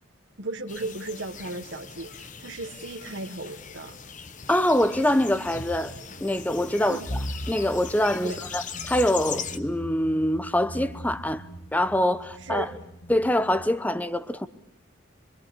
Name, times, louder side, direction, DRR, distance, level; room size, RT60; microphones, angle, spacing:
voice 1, 0.4-4.0 6.8-7.1 8.2-8.4 12.4-12.8, right 2 dB, 60° right, 1.5 m, -35 dB
sound 1, 0.7-9.6, left 7 dB, 40° left, 1.0 m, -40 dB
voice 2, 4.5-11.5 11.7-12.7 13.1-14.5, left 1 dB, 10° left, 0.9 m, -25 dB
sound 2, 4.9-13.7, equal, 70° left, 1.9 m, -40 dB
26.0 x 22.5 x 8.5 m
head